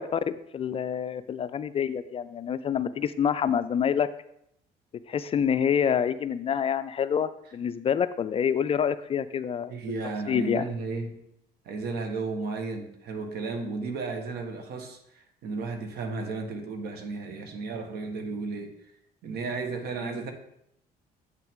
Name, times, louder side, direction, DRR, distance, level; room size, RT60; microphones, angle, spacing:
voice 1, 0.0-4.1 5.1-9.8 10.3-10.6, left 8 dB, 35° left, 13 dB, 0.3 m, -27 dB
voice 2, 9.7-11.2 11.6-18.7 19.2-20.3, right 4 dB, 70° right, 6 dB, 1.3 m, -34 dB
8.0 x 5.9 x 3.6 m, 0.75 s
cardioid pair, 105°, 17 cm